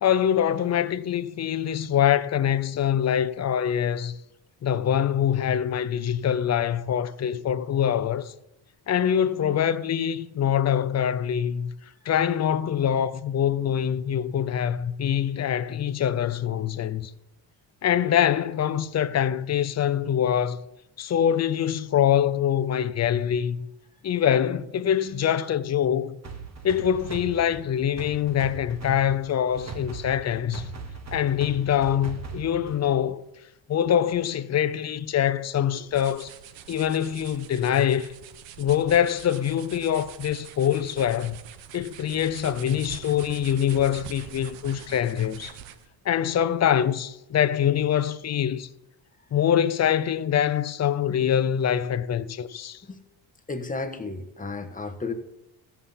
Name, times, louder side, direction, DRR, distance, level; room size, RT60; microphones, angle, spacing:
voice 1, 0.0-4.1 4.6-8.3 8.9-11.7 12.0-17.1 17.8-20.6 21.0-23.6 24.0-26.2 26.6-30.7 31.1-33.2 33.7-36.3 36.7-38.1 38.6-41.4 41.7-45.6 46.0-48.7 49.3-52.8, left 9 dB, 35° left, 0.6 m, -24 dB
sound 1, 26.2-33.0, right 5 dB, 35° right, 1.6 m, -39 dB
sound 2, 35.5-46.0, right 10 dB, 80° right, 0.9 m, -44 dB
voice 2, 53.5-55.1, left 3 dB, 20° left, 1.4 m, -33 dB
14.0 x 5.8 x 7.2 m
cardioid pair, 90°, 44 cm